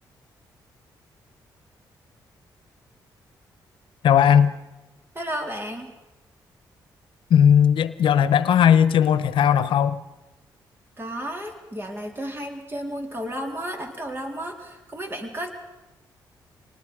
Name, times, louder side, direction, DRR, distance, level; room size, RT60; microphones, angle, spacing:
voice 1, 4.0-4.5 7.3-10.0, left 8 dB, 75° left, 1.0 m, -17 dB
voice 2, 5.1-5.9 11.0-15.5, equal, 25° right, 4.1 m, -33 dB
26.5 x 19.5 x 5.1 m
supercardioid pair, 60°, 9 cm